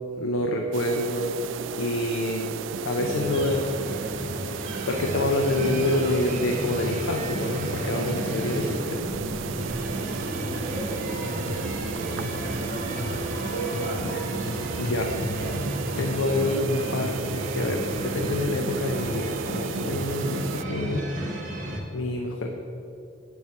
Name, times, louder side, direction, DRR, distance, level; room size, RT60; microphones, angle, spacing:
voice 1, 0.2-1.3 1.8-2.5 2.8-3.6 4.1-4.4 4.9-9.0 13.6-13.8 14.8-15.1 16.0-21.1 21.5-21.7 21.9-22.5, left 2 dB, 85° left, 3 dB, 0.7 m, -27 dB
sound 1, 0.7-20.6, right 7 dB, 70° right, 0.3 m, -35 dB
sound 2, 3.0-21.8, right 1 dB, 40° right, 1.5 m, -33 dB
voice 2, 9.9-12.3 12.7-13.0 13.8-14.3, right 1 dB, 15° right, -10 dB, 2.1 m, -40 dB
sound 3, 10.9-16.1, equal, 45° left, 0.8 m, -35 dB
9.1 x 4.5 x 7.1 m, 2.6 s
head